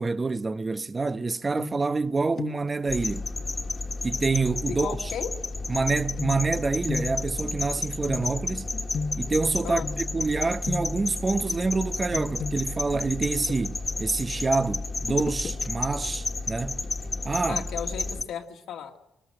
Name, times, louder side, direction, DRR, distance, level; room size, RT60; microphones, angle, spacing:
voice 1, 0.0-3.3 4.0-5.1 5.7-8.7 9.2-16.8 17.2-17.6, right 3 dB, 25° right, 0.8 m, -27 dB
sound 1, 1.6-2.1 2.4-2.8 4.3-4.4 6.2-10.3 10.6-11.2 12.1-14.0 15.0-15.7 16.1-16.2, left 4 dB, 50° left, 1.1 m, -36 dB
sound 2, 2.9-18.2, left 3 dB, 25° left, 1.5 m, -32 dB
voice 2, 4.7-5.3 9.6-9.9 17.5-19.0, left 8 dB, 80° left, 2.0 m, -35 dB
23.5 x 20.5 x 7.6 m
cardioid pair, 90°, 0 cm